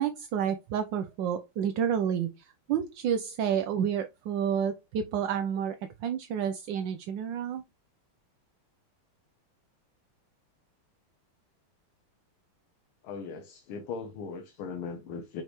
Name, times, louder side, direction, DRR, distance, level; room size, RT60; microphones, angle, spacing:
voice 1, 0.0-5.8 6.0-7.6, right 8 dB, 70° right, 1.2 m, -30 dB
voice 2, 13.0-15.4, left 5 dB, 80° left, 1.7 m, -38 dB
6.3 x 5.2 x 3.1 m
omnidirectional pair, 2.3 m